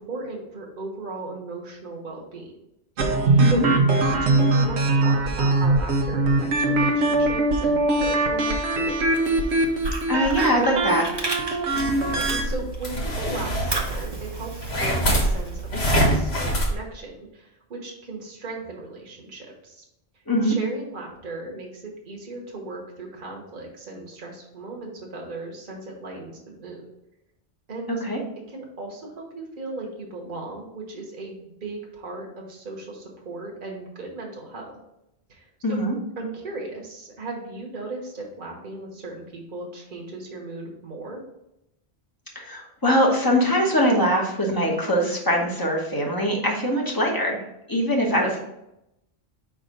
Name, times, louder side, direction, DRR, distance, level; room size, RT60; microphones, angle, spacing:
voice 1, 0.0-2.5 3.4-3.6 4.1-9.0 11.6-11.8 12.1-14.5 14.8-19.8 20.4-26.8 27.7-27.9 28.5-34.7 35.3-35.8 36.2-41.2 48.1-48.4, right 3 dB, 50° right, -1 dB, 1.3 m, -36 dB
sound 1, 3.0-12.4, right 2 dB, 90° right, 1.1 m, -22 dB
Fire, 9.0-12.9 13.2-16.0, right 2 dB, 25° right, 0.8 m, -34 dB
voice 2, 10.1-11.0 20.3-20.5 28.0-28.2 35.6-35.9 42.3-47.4 47.7-48.4, equal, 20° left, -2 dB, 1.1 m, -22 dB
sound 2, 11.7-16.7, right 1 dB, 70° left, 1.6 m, -25 dB
5.2 x 3.6 x 5.1 m, 0.85 s
omnidirectional pair, 1.1 m